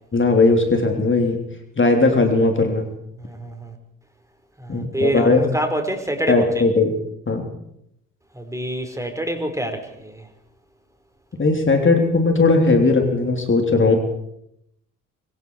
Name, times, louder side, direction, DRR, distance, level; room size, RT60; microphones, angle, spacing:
voice 1, 0.1-1.4 1.8-2.8 4.7-5.5 6.3-6.9 7.3-7.5 11.4-14.0, left 3 dB, 30° left, 4 dB, 3.5 m, -17 dB
voice 2, 3.2-3.7 4.6-6.6 8.3-10.2, right 1 dB, 5° right, 5 dB, 5.1 m, -26 dB
24.5 x 24.0 x 4.8 m, 0.78 s
figure-of-eight pair, 50°, 42 cm